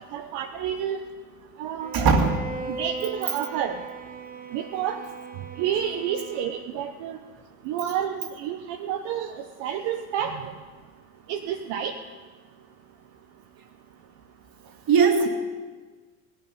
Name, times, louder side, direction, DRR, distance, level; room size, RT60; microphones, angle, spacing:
voice 1, 0.1-1.0 1.6-1.9 2.7-3.8 4.5-5.0 5.6-7.2 7.6-10.5 11.3-11.9, right 9 dB, 70° right, 4 dB, 1.0 m, -29 dB
Bowed string instrument, 1.8-6.9, right 4 dB, 20° right, 1.3 m, -38 dB
voice 2, 1.9-2.5 14.9-15.3, right 5 dB, 50° right, 5 dB, 2.2 m, -19 dB
16.5 x 11.5 x 5.5 m, 1.4 s
supercardioid pair, 85°, 46 cm